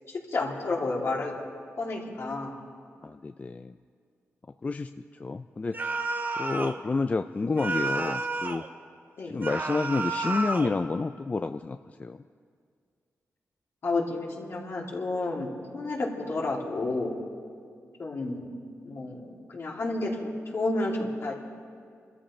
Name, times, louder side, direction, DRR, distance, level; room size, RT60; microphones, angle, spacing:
voice 1, 0.1-1.3 1.8-2.5 9.2-9.4 13.8-17.1 18.0-18.4 18.8-21.3, left 2 dB, 60° left, -3 dB, 2.8 m, -31 dB
voice 2, 3.0-3.7 4.6-5.9 6.4-8.6 9.3-12.2, left 3 dB, 30° left, 9 dB, 0.3 m, -30 dB
sound 1, 5.7-6.8 7.6-8.7 9.4-10.8, right 3 dB, 40° right, 1.0 m, -31 dB
29.0 x 14.0 x 3.2 m, 2.2 s
cardioid pair, 90°, 5 cm